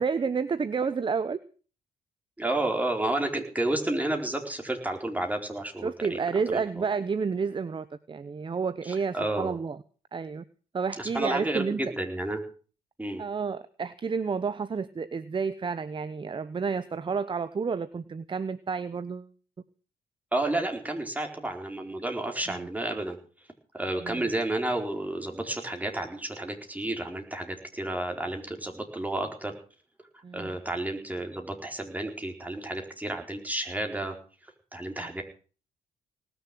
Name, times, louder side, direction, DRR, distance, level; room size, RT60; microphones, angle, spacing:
voice 1, 0.0-1.4 5.8-9.8 10.1-10.4 10.7-11.9 13.2-19.3 22.5-22.7 24.0-24.2 30.2-30.5 35.0-35.1, right 5 dB, 30° right, 14 dB, 0.9 m, -30 dB
voice 2, 2.4-6.2 6.5-6.8 9.1-9.6 11.0-12.4 13.0-13.2 20.3-23.2 23.7-29.5 30.3-34.2 34.7-35.2, right 1 dB, 10° right, 3 dB, 4.5 m, -31 dB
19.0 x 7.1 x 9.2 m, 0.40 s
cardioid pair, 85°, 15 cm